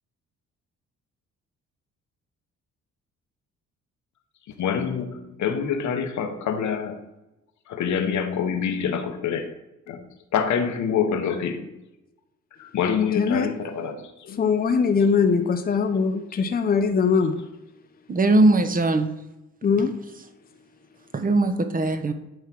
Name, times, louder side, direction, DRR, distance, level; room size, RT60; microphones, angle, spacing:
voice 1, 4.6-7.1 7.7-9.5 9.9-10.1 10.3-11.7 12.6-14.4, left 7 dB, 70° left, 1.2 m, -26 dB
voice 2, 13.1-13.5 14.3-17.4 19.6-19.9, left 5 dB, 30° left, 0.7 m, -21 dB
voice 3, 18.1-19.1 21.1-22.1, right 2 dB, 30° right, 1.0 m, -20 dB
9.3 x 3.3 x 6.0 m
cardioid pair, 90°, 30 cm